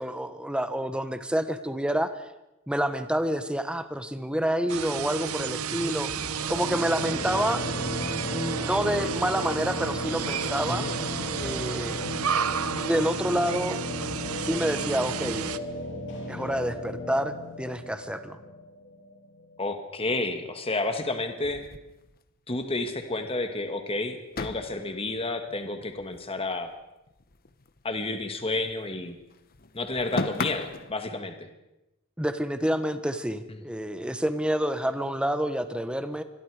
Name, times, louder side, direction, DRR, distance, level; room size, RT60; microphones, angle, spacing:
voice 1, 0.0-2.1 2.7-6.1 6.5-10.9 11.3-12.0 12.8-13.8 14.4-15.5 16.3-18.4 32.2-36.2, equal, 5° right, 10 dB, 1.3 m, -28 dB
sound 1, 4.7-15.6, right 7 dB, 85° right, 0.9 m, -32 dB
sound 2, 6.1-19.8, left 1 dB, 60° left, 7.7 m, -35 dB
voice 2, 19.6-21.6 22.5-26.7 27.8-29.2 29.7-31.5, left 2 dB, 25° left, 6 dB, 1.9 m, -31 dB
sound 3, 21.4-22.8 23.1-23.2 23.5-23.6 24.3-26.8 27.1-28.9 29.2-30.9, left 3 dB, 45° left, 1.1 m, -37 dB
26.0 x 21.5 x 5.0 m, 0.93 s
head